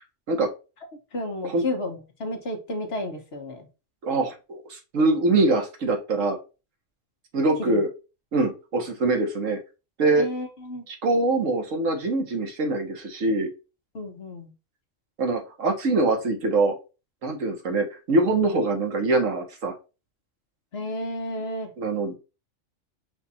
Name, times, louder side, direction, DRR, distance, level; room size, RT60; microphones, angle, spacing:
voice 1, 1.1-3.7 7.7-7.8 10.2-10.9 13.9-14.5 20.7-21.7, left 1 dB, 55° left, 4 dB, 1.2 m, -32 dB
voice 2, 4.0-6.4 7.3-7.9 8.3-9.6 10.0-10.3 10.9-13.5 15.2-16.7 17.2-19.7 21.8-22.2, right 2 dB, 75° right, 3 dB, 1.5 m, -23 dB
5.1 x 2.4 x 4.1 m, 0.29 s
omnidirectional pair, 1.3 m